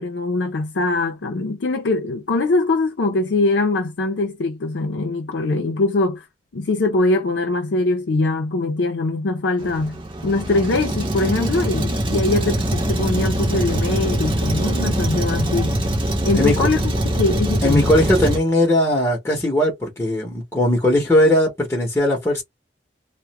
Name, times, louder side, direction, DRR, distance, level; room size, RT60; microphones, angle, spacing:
voice 1, 0.0-6.3 6.5-15.8 16.2-17.9, left 2 dB, 85° left, 0.5 m, -22 dB
Truck, 9.6-18.4, right 1 dB, 30° right, 0.7 m, -23 dB
voice 2, 16.3-16.7 17.6-22.4, left 1 dB, 15° left, 0.7 m, -19 dB
2.3 x 2.1 x 2.8 m
head